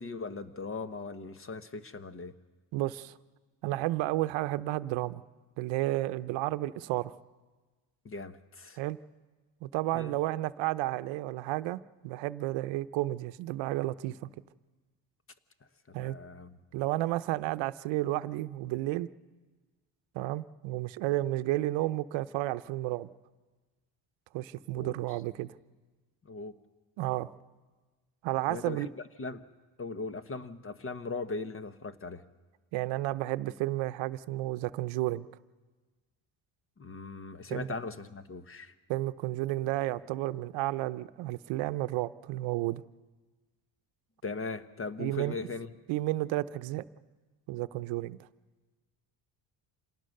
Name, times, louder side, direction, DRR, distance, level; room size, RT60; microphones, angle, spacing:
voice 1, 0.0-2.3 8.0-8.8 9.9-10.2 15.9-16.6 24.7-24.9 26.3-26.6 28.5-28.8 29.2-29.4 29.8-32.2 36.8-38.7 44.2-45.7, left 3 dB, 30° left, 11 dB, 1.3 m, -39 dB
voice 2, 2.7-3.1 3.6-5.2 5.6-7.1 8.8-9.0 9.6-14.2 15.9-16.2 16.7-19.1 20.1-23.1 24.3-25.6 27.0-27.3 28.2-28.9 32.7-35.3 37.5-37.7 38.9-42.8 45.0-45.3 45.9-46.8 47.5-48.3, right 17 dB, 85° right, 14 dB, 0.8 m, -32 dB
27.0 x 18.5 x 6.6 m, 1.3 s
cardioid pair, 95°, 44 cm